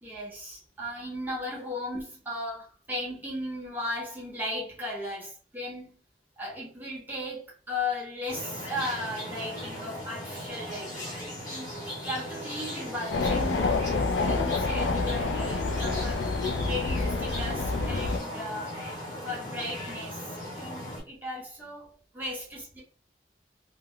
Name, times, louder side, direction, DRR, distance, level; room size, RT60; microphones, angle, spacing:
voice 1, 0.0-6.0 6.4-11.7 12.0-16.4 16.6-18.8 19.2-22.8, left 1 dB, 10° right, 0.6 m, -36 dB
sound 1, 8.3-21.0, equal, 25° left, 1.0 m, -38 dB
sound 2, 13.1-18.2, left 3 dB, 90° left, 0.4 m, -28 dB
2.2 x 2.1 x 3.6 m
head